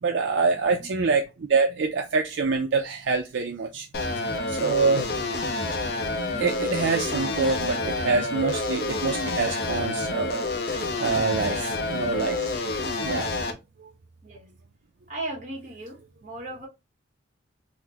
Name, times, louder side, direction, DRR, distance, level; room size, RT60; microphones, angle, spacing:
voice 1, 0.0-3.9 4.5-5.1 6.4-12.5 13.0-13.3 13.8-13.9, right 4 dB, 65° right, 0.4 m, -26 dB
voice 2, 0.5-0.9 5.0-5.2 11.4-11.7 13.5-13.6 14.2-14.5 15.1-16.7, right 2 dB, 40° right, 1.2 m, -38 dB
sound 1, 3.9-13.5, left 2 dB, 55° left, 0.5 m, -28 dB
4.0 x 2.1 x 2.8 m
head